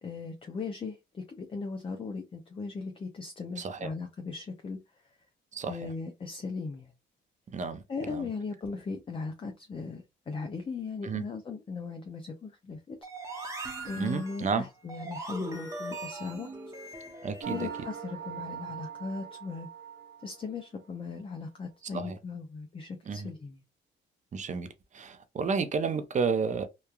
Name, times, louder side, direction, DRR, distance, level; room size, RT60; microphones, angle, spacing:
voice 1, 0.0-4.8 5.7-6.9 7.9-13.0 13.3-13.5 13.8-16.5 17.5-19.7 20.2-23.6, left 4 dB, 25° left, 0.5 m, -38 dB
voice 2, 3.6-3.9 5.5-5.8 7.5-7.8 8.1-8.3 11.0-11.2 14.0-14.6 17.2-17.6 21.9-22.1 23.1-23.2 24.3-24.7 24.9-26.7, right 5 dB, 40° right, 0.5 m, -31 dB
sound 1, 13.0-17.9, right 2 dB, 15° right, 0.8 m, -40 dB
sound 2, 17.4-20.8, right 7 dB, 80° right, 1.2 m, -41 dB
2.9 x 2.2 x 2.3 m
cardioid pair, 90°, 20 cm